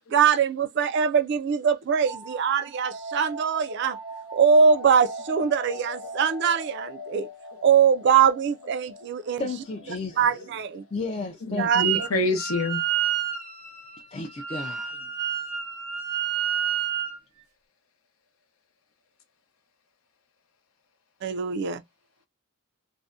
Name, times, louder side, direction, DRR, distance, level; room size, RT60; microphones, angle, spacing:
voice 1, 0.1-4.0 4.3-7.3 7.6-9.5 9.9-10.8 11.6-12.1 21.2-21.8, right 6 dB, 55° right, 0.3 m, -22 dB
sound 1, 2.0-11.4, equal, 55° left, 0.9 m, -41 dB
voice 2, 9.4-10.2 10.9-12.0 14.1-14.9, left 3 dB, 30° left, 0.4 m, -33 dB
voice 3, 11.2-12.8, left 2 dB, 80° left, 0.7 m, -27 dB
Wind instrument woodwind instrument, 11.7-12.1 12.3-17.2, right 9 dB, 85° right, 0.7 m, -29 dB
2.6 x 2.1 x 2.3 m
head